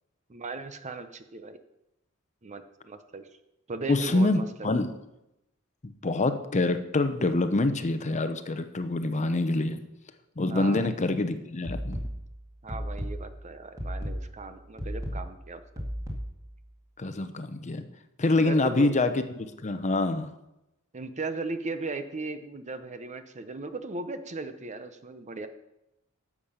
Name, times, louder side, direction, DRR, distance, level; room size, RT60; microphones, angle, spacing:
voice 1, 0.3-1.6 2.4-3.3 3.7-4.7 10.5-11.0 12.6-15.9 18.4-18.9 20.9-25.5, right 3 dB, 35° right, 10 dB, 0.7 m, -37 dB
voice 2, 3.9-4.9 5.8-9.8 10.4-12.0 17.0-17.8 18.2-20.3, left 2 dB, 35° left, 9 dB, 0.7 m, -26 dB
sound 1, 11.6-16.6, equal, 15° right, 2.1 m, -35 dB
11.5 x 7.4 x 5.7 m, 0.90 s
head